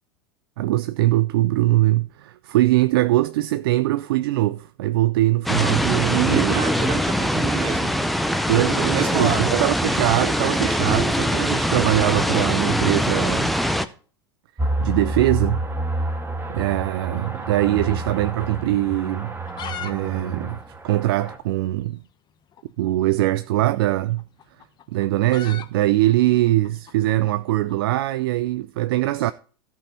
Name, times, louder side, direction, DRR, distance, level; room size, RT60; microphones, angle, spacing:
voice 1, 0.6-6.6 8.5-13.5 14.8-15.6 16.5-19.4 19.8-22.0 22.8-24.2 24.9-29.3, right 16 dB, 70° right, 0.4 m, -22 dB
sound 1, 5.5-13.9, equal, ahead, 0.7 m, -22 dB
voice 2, 6.1-7.9 8.8-9.6 29.2-29.3, right 7 dB, 45° right, 2.0 m, -28 dB
sound 2, 14.6-21.4, right 1 dB, 15° right, 1.8 m, -29 dB
sound 3, 17.0-18.3 18.6-18.7 19.2-19.9 20.2-20.3 20.5-20.6 21.2-21.3 22.5-22.7 23.8-28.0, left 9 dB, 35° left, 1.0 m, -39 dB
13.5 x 5.6 x 4.3 m
hypercardioid pair, 90°, 13 cm